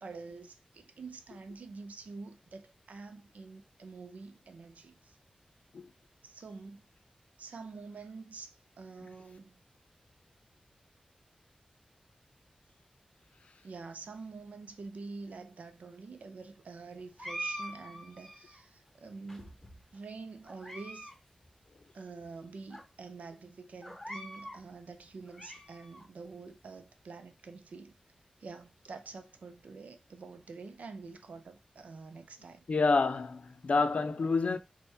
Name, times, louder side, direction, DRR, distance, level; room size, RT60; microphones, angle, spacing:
voice 1, 0.0-5.2 6.2-6.8 7.4-9.6 13.6-19.6 19.9-21.1 21.9-28.0 28.4-32.6, right 4 dB, 80° right, 0.5 m, -47 dB
sound 1, 17.2-18.6 19.3-20.0 20.4-21.2 21.4-21.5 22.2-22.3 22.7-22.8 23.8-24.6 25.1-26.0, equal, 10° left, 1.0 m, -43 dB
voice 2, 32.7-34.6, left 4 dB, 60° left, 0.4 m, -28 dB
4.3 x 2.2 x 3.3 m
wide cardioid pair, 70°, 2 cm